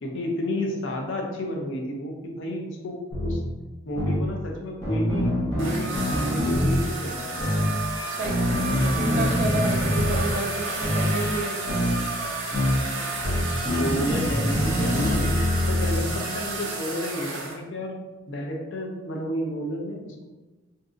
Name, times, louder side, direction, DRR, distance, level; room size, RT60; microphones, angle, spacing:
voice 1, 0.0-3.0 3.2-3.4 3.9-7.7 13.6-15.4 15.7-17.9 18.3-20.2, left 1 dB, 65° left, 0 dB, 0.6 m, -31 dB
sound 1, 3.1-3.4 4.0-4.2 4.8-6.8 7.4-7.6 8.2-10.2 10.8-11.1 11.7-11.9 12.5-12.8 13.2-16.0, left 1 dB, 15° left, 0.8 m, -24 dB
sound 2, 5.6-17.6, right 3 dB, 65° right, 0.7 m, -32 dB
voice 2, 8.1-12.0, right 2 dB, 40° right, 4 dB, 0.3 m, -31 dB
2.6 x 2.4 x 3.7 m, 1.2 s
head